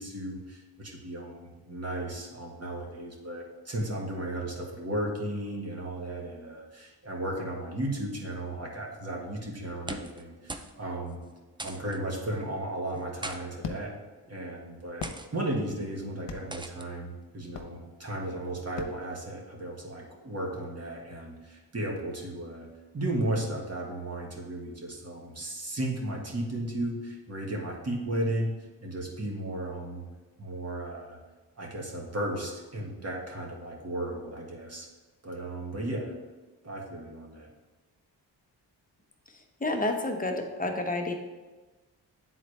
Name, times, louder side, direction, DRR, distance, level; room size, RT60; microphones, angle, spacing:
voice 1, 0.0-11.2 11.6-13.9 14.3-22.7 22.9-28.5 28.8-30.0 30.4-31.2 31.6-34.9 35.2-36.1 36.6-37.5, right 1 dB, 35° right, -1 dB, 1.7 m, -35 dB
sound 1, 9.7-10.2 10.5-10.8 11.0-11.1 11.6-12.0 12.9-13.4 14.2-14.4 15.0-15.3 16.5-16.9, right 2 dB, 10° right, 0.4 m, -39 dB
sound 2, 12.9-19.8, left 5 dB, 80° left, 0.8 m, -44 dB
voice 2, 39.6-41.1, left 2 dB, 20° left, 3 dB, 1.0 m, -29 dB
9.4 x 4.0 x 3.3 m, 1.2 s
cardioid pair, 75°, 43 cm